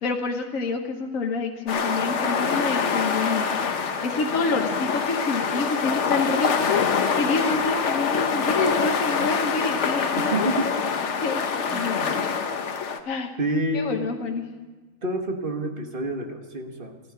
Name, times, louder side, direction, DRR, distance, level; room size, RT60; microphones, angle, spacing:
voice 1, 0.0-3.5 4.0-10.5 11.2-11.4 11.7-12.4 13.0-13.3 13.7-14.4, left 4 dB, 80° left, 3 dB, 1.4 m, -28 dB
sound 1, 1.7-13.0, left 6 dB, 60° left, 1.2 m, -25 dB
voice 2, 10.3-10.7 11.7-12.1 13.4-14.0 15.0-17.0, right 1 dB, 40° right, 4 dB, 1.5 m, -28 dB
14.0 x 10.5 x 9.3 m, 1.3 s
omnidirectional pair, 1.4 m